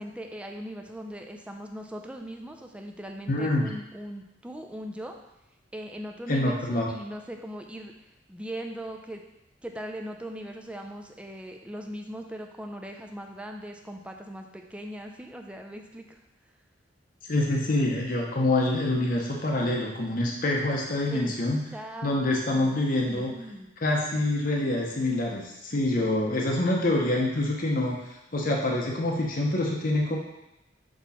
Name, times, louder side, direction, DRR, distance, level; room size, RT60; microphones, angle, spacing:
voice 1, 0.0-5.1 5.7-7.9 8.3-9.2 9.6-16.2 21.1-21.3 21.7-22.1 22.5-22.8 23.1-23.7, equal, 5° right, 3 dB, 0.5 m, -39 dB
voice 2, 3.3-3.7 6.3-6.9 17.3-21.7 22.0-23.3 23.8-28.0 28.3-30.2, left 1 dB, 50° left, -1 dB, 0.9 m, -26 dB
6.1 x 3.0 x 5.6 m, 0.88 s
head